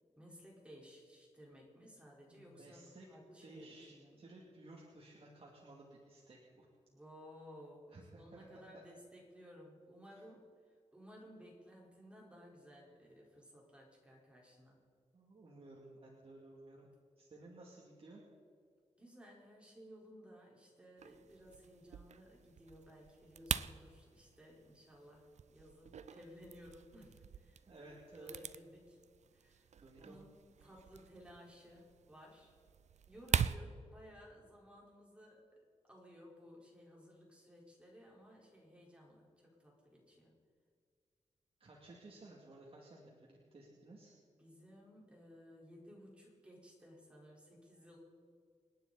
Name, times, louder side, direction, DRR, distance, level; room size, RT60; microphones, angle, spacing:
voice 1, 0.2-4.2 6.9-10.4 10.9-14.8 19.0-29.0 29.3-30.3 30.6-32.5 33.1-40.4 44.4-48.0, equal, 10° right, -3 dB, 4.5 m, -58 dB
voice 2, 2.3-3.1 3.4-6.7 7.9-8.8 15.1-16.9 17.2-18.2 27.7-28.3 29.8-30.2 41.6-44.2, right 2 dB, 50° right, -3 dB, 2.6 m, -56 dB
sound 1, 21.0-33.6, right 8 dB, 65° right, 0.5 m, -43 dB
28.5 x 9.5 x 4.2 m, 2.1 s
wide cardioid pair, 115°, 13 cm